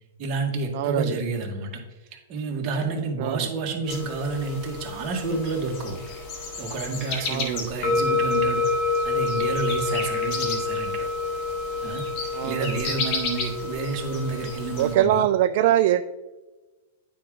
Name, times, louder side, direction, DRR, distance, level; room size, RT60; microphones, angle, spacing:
voice 1, 0.2-1.7 2.3-6.0 6.6-8.7 9.0-11.1 11.8-15.2, right 4 dB, 35° right, 0 dB, 1.7 m, -29 dB
voice 2, 0.7-1.2 3.2-3.5 7.3-7.7 12.3-12.8 14.8-16.0, right 12 dB, 55° right, 9 dB, 0.3 m, -23 dB
sound 1, 3.9-14.9, left 3 dB, 40° left, 1.6 m, -28 dB
9.1 x 4.8 x 3.8 m, 1.2 s
hypercardioid pair, 130°, 0 cm